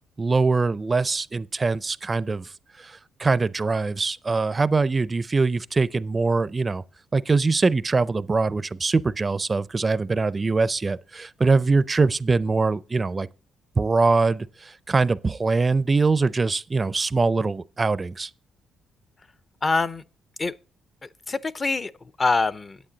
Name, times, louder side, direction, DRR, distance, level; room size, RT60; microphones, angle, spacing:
voice 1, 0.2-6.8 7.1-13.3 13.8-18.3, right 3 dB, 30° right, 0.4 m, -23 dB
voice 2, 19.6-20.0 20.4-20.5 21.0-22.8, left 3 dB, 30° left, 0.5 m, -25 dB
10.0 x 8.5 x 3.9 m
cardioid pair, 90°, 0 cm